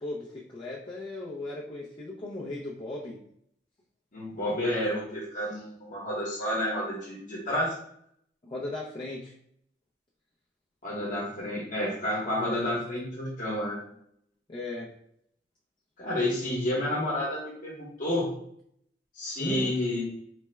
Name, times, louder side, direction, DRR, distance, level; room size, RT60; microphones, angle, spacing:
voice 1, 0.0-3.2 8.4-9.3 12.4-12.6 14.5-15.0 19.4-19.7, left 2 dB, 30° left, -6 dB, 0.4 m, -37 dB
voice 2, 4.1-7.7 10.8-13.8 16.0-18.3 19.2-20.0, left 1 dB, 50° left, -5 dB, 0.9 m, -30 dB
3.2 x 2.0 x 3.3 m, 0.69 s
head